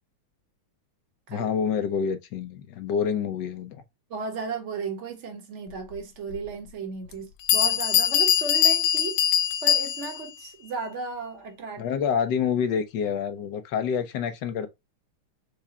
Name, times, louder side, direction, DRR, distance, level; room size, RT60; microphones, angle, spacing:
voice 1, 1.3-3.8 11.8-14.7, left 7 dB, 65° left, 1.2 m, -27 dB
voice 2, 4.1-9.2 9.6-11.9, right 4 dB, 40° right, 1.2 m, -34 dB
Bell, 6.3-6.4 7.1-7.2 7.5-10.3, left 10 dB, 85° left, 1.5 m, -22 dB
4.8 x 2.3 x 4.0 m
omnidirectional pair, 2.4 m